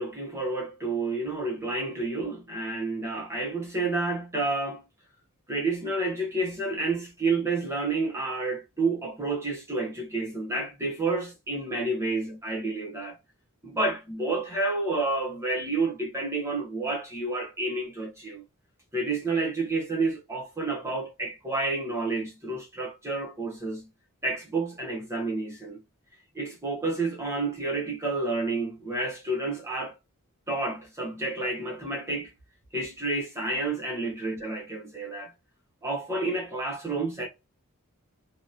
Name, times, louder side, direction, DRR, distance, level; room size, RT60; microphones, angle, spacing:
voice 1, 0.0-4.8 5.5-13.2 13.6-18.4 18.9-23.9 24.2-25.8 26.3-29.9 30.5-32.3 32.7-35.3 35.8-37.3, right 3 dB, 10° right, 0.8 m, -30 dB
2.8 x 2.0 x 2.4 m
head